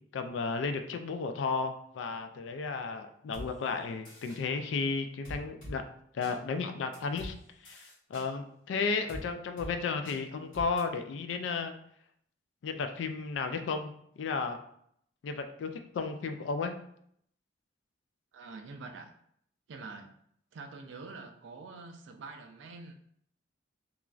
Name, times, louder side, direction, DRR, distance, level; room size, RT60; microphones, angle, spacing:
voice 1, 0.1-5.8 6.1-7.3 7.6-11.7 12.6-13.9 14.2-14.6 15.2-15.7 15.9-16.8, left 4 dB, 70° left, 8 dB, 0.3 m, -33 dB
sound 1, 3.3-3.5 4.0-4.4 5.2-5.7 6.2-6.3 6.9-7.3 7.6-8.3 9.1-9.2 9.6-9.7 10.0-10.2 10.5-10.8, equal, 90° left, 1.4 m, -43 dB
voice 2, 18.3-19.1 19.7-20.1 20.5-22.9, right 3 dB, 75° right, 5 dB, 0.4 m, -45 dB
3.0 x 2.4 x 2.4 m, 0.69 s
head